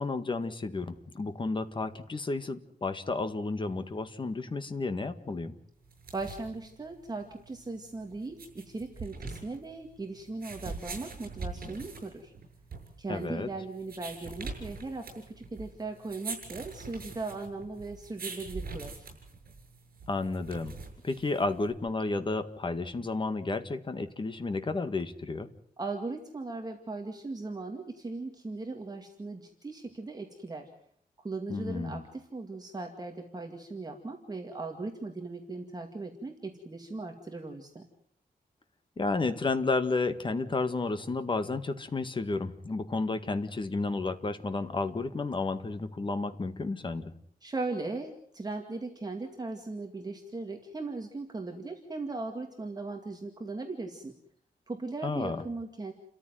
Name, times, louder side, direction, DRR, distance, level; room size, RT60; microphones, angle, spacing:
voice 1, 0.0-5.5 13.1-13.5 20.1-20.8 21.0-25.5 31.5-32.0 39.0-47.1 55.0-55.4, left 3 dB, 30° left, 9 dB, 1.8 m, -32 dB
sound 1, 5.8-21.7, right 4 dB, 65° right, 7.2 m, -43 dB
voice 2, 6.1-12.3 13.0-19.1 25.8-30.7 31.2-37.8 47.4-54.1 54.7-55.9, right 3 dB, 25° right, 3 dB, 2.3 m, -38 dB
30.0 x 14.0 x 9.4 m, 0.65 s
wide cardioid pair, 180°, 16 cm